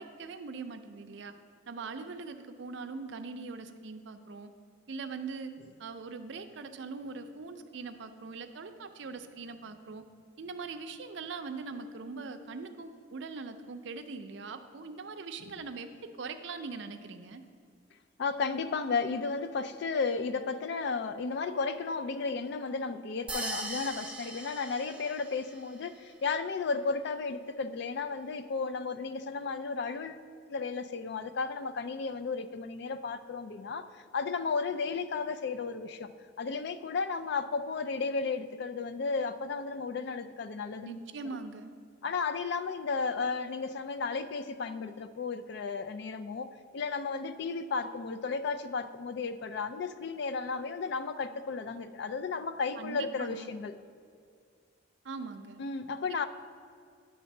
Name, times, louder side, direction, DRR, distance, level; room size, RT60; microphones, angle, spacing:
voice 1, 0.0-1.3 1.7-4.5 4.9-5.5 5.8-10.0 10.4-17.4 40.8-41.7 52.8-53.5 55.0-55.6, right 4 dB, 65° right, 8 dB, 0.5 m, -41 dB
voice 2, 18.2-30.2 30.5-36.1 36.4-41.0 42.0-53.7 55.6-56.3, left 4 dB, 60° left, 12 dB, 0.3 m, -34 dB
sound 1, 23.3-25.6, right 2 dB, 5° right, 0.5 m, -39 dB
9.6 x 3.4 x 6.4 m, 2.2 s
head